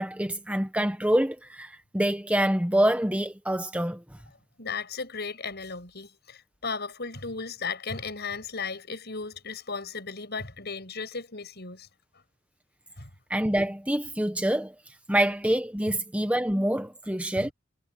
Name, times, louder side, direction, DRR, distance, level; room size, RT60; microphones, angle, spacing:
voice 1, 0.0-4.0 13.3-14.7 15.1-17.5, right 1 dB, 5° right, 1.1 m, -26 dB
voice 2, 4.6-11.9 13.0-13.1 17.4-17.5, left 4 dB, 50° left, 7.7 m, -35 dB
head